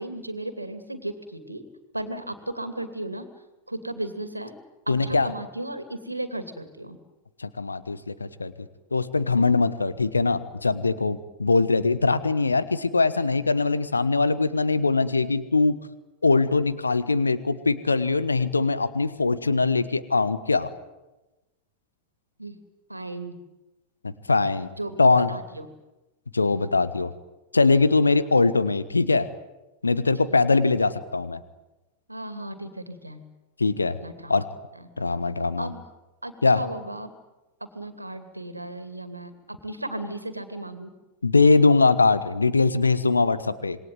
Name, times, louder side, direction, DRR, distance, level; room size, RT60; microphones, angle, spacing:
voice 1, 0.0-1.6 1.9-3.3 3.7-4.5 4.9-7.0 22.4-22.6 22.9-23.4 24.8-25.7 30.3-30.4 32.1-33.2 34.0-34.3 34.7-34.8 35.6-35.8 36.2-37.1 37.7-40.9, right 1 dB, 85° right, 10 dB, 2.5 m, -35 dB
voice 2, 4.9-5.3 7.4-8.5 8.9-15.8 16.2-20.7 24.3-24.7 25.0-25.3 26.3-27.1 27.5-29.3 29.8-31.4 33.6-34.0 34.3-34.4 35.0-35.7 36.4-36.6 41.2-43.8, left 3 dB, 80° left, 15 dB, 1.2 m, -22 dB
27.0 x 21.5 x 9.4 m, 1.0 s
figure-of-eight pair, 90°, 0 cm